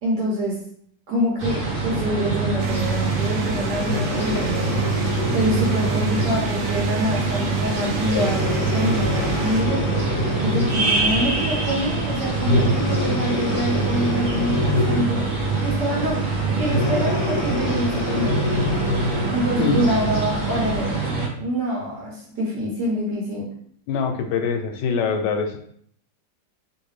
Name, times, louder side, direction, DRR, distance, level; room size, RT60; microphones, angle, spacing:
voice 1, 0.0-0.6 1.1-4.8 5.3-9.8 10.4-16.2 16.6-18.3 19.3-21.0 21.4-23.5, equal, 75° right, -4 dB, 1.5 m, -26 dB
sound 1, 1.4-21.3, right 3 dB, 40° right, 1.0 m, -25 dB
sound 2, 2.6-9.6, right 4 dB, 90° right, 1.2 m, -34 dB
Breathing, 3.8-6.4 7.0-7.2 8.1-11.0 12.4-15.2 16.6-19.4 20.0-20.1, left 2 dB, 55° left, 0.7 m, -26 dB
voice 2, 19.6-20.0 23.9-25.6, left 5 dB, 80° left, 4 dB, 1.2 m, -23 dB
3.3 x 2.4 x 3.2 m, 0.63 s
omnidirectional pair, 1.9 m